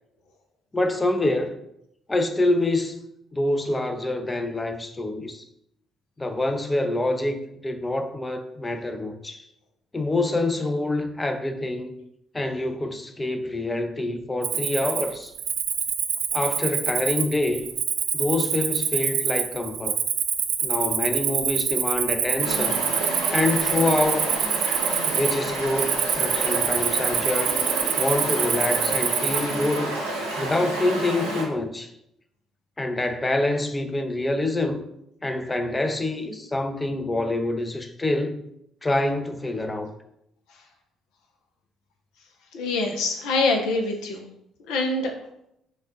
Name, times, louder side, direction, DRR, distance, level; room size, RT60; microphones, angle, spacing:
voice 1, 0.7-1.6 2.1-3.0 3.3-5.4 6.2-9.4 9.9-12.0 12.3-15.3 16.3-17.6 18.1-20.0 20.6-22.8 23.3-24.3 25.0-27.6 28.0-30.0 30.4-31.9 32.8-34.8 35.2-38.4 38.8-39.9, left 2 dB, 20° left, 0.6 m, -26 dB
Cricket, 14.4-29.8, right 8 dB, 60° right, 0.4 m, -26 dB
Stream, 22.4-31.4, right 1 dB, 90° right, 1.0 m, -30 dB
voice 2, 42.5-44.2 44.7-45.1, left 3 dB, 65° left, 0.7 m, -24 dB
5.4 x 2.4 x 3.7 m
figure-of-eight pair, 45°, 0 cm